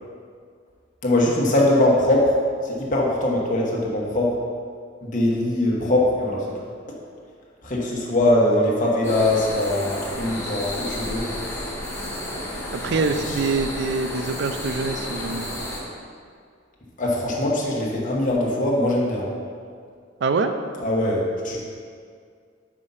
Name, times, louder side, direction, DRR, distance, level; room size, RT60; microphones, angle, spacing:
voice 1, 1.0-2.3 2.6-4.3 5.0-6.6 7.6-11.3 13.3-13.4 17.0-19.3 20.8-21.6, left 1 dB, 40° left, -3 dB, 1.2 m, -21 dB
sound 1, 9.0-15.8, left 1 dB, 15° left, 1.3 m, -32 dB
voice 2, 12.7-15.5 20.2-20.5, right 4 dB, 60° right, 8 dB, 0.4 m, -24 dB
5.4 x 5.0 x 5.6 m, 2.1 s
head